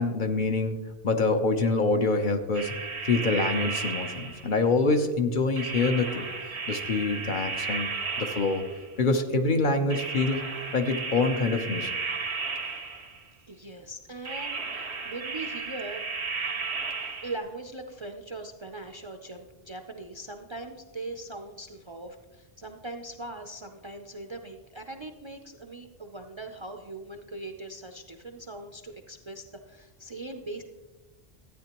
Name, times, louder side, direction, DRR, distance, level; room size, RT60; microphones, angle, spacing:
voice 1, 0.0-2.8 3.0-7.9 8.2-8.7 9.0-10.5 10.7-12.0, left 3 dB, 50° left, 6 dB, 0.8 m, -26 dB
sound 1, 2.5-4.6 5.6-9.0 9.9-13.2 14.2-17.4, right 4 dB, 90° right, 1.3 m, -34 dB
voice 2, 13.5-16.0 17.2-30.6, right 2 dB, 35° right, 4 dB, 0.5 m, -40 dB
13.0 x 9.0 x 3.0 m, 1.2 s
omnidirectional pair, 1.1 m